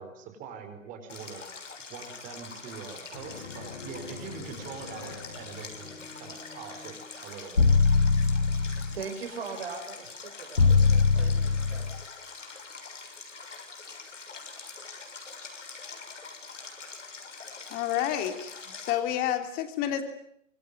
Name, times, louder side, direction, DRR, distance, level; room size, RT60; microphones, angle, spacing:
voice 1, 0.0-1.4 1.9-6.9 7.2-7.7, right 6 dB, 20° right, 6 dB, 4.8 m, -43 dB
Stream, 1.1-18.9, left 4 dB, 65° left, 6.8 m, -44 dB
sound 1, 3.1-7.3, left 5 dB, 50° left, 5.1 m, -45 dB
sound 2, 7.6-9.0 10.6-12.0, left 4 dB, 80° left, 1.5 m, -22 dB
voice 2, 8.8-11.9, right 5 dB, 45° right, 6 dB, 5.7 m, -40 dB
voice 3, 17.7-20.0, left 11 dB, 20° left, 8 dB, 3.1 m, -29 dB
26.0 x 23.0 x 9.6 m, 0.72 s
figure-of-eight pair, 130°, 40 cm